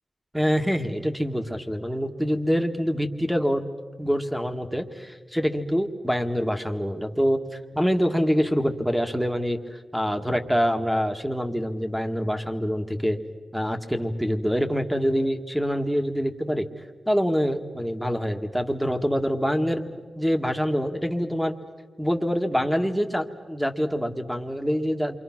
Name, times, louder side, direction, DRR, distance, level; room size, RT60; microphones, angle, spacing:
voice 1, 0.3-3.6 4.0-7.4 7.7-9.6 9.9-13.2 13.5-16.7 17.1-21.5 22.0-25.2, equal, 5° right, 5 dB, 2.0 m, -25 dB
28.0 x 24.5 x 6.1 m, 1.5 s
cardioid pair, 75°, 0 cm